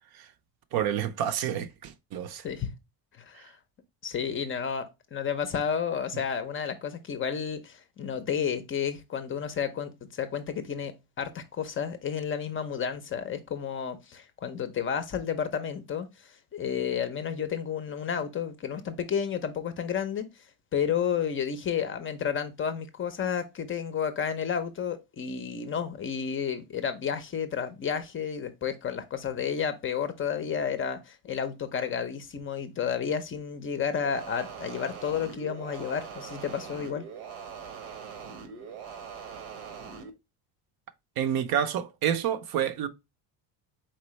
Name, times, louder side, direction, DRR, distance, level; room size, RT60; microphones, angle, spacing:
voice 1, 0.7-2.4 41.2-42.9, right 9 dB, 55° right, 0.6 m, -28 dB
voice 2, 3.2-3.6 4.0-20.3 20.7-37.0, left 7 dB, 30° left, 0.5 m, -31 dB
sound 1, 34.0-40.1, right 6 dB, 80° right, 1.1 m, -42 dB
4.3 x 3.7 x 3.1 m
cardioid pair, 135°, 43 cm